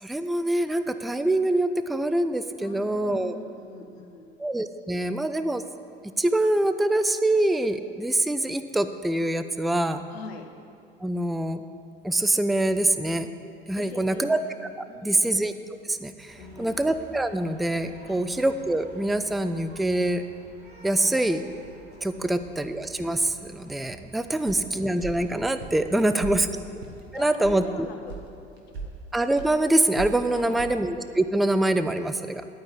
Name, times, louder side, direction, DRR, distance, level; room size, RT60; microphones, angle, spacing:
voice 1, 0.0-3.4 4.4-5.6 6.2-10.0 11.0-11.6 12.0-13.3 13.7-14.4 14.8-15.5 15.8-20.2 20.8-21.4 22.0-26.5 27.1-27.9 29.1-32.4, right 1 dB, ahead, 10 dB, 0.4 m, -25 dB
voice 2, 2.6-4.4 10.1-10.5 13.8-14.2 14.9-15.3 16.4-16.8 18.1-18.2 22.1-22.5 24.3-24.6 26.0-26.7 27.1-28.2 30.3-30.7, left 4 dB, 75° left, 5 dB, 1.2 m, -42 dB
sound 1, 16.3-26.7, right 2 dB, 30° right, 2.9 m, -49 dB
sound 2, 24.5-24.6 25.0-25.2 25.6-25.8 26.2-26.4 26.8-27.0 27.4-27.6 28.1-28.2 28.6-28.9 29.4-29.5 30.0-30.2 30.6-30.7, right 3 dB, 85° right, 1.4 m, -37 dB
11.5 x 4.8 x 8.2 m, 2.6 s
hypercardioid pair, 70°, 31 cm